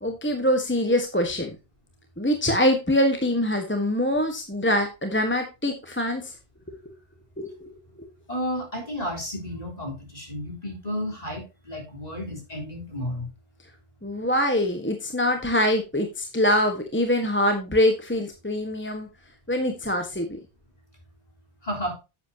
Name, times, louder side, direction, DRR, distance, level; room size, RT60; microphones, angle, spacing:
voice 1, 0.0-1.5 2.2-6.4 7.4-8.1 14.0-19.1 19.5-20.3, left 1 dB, 10° left, 5 dB, 1.3 m, -24 dB
voice 2, 8.3-13.3 21.6-22.0, equal, 35° left, 1 dB, 4.0 m, -32 dB
10.5 x 8.3 x 2.8 m, 0.27 s
omnidirectional pair, 1.1 m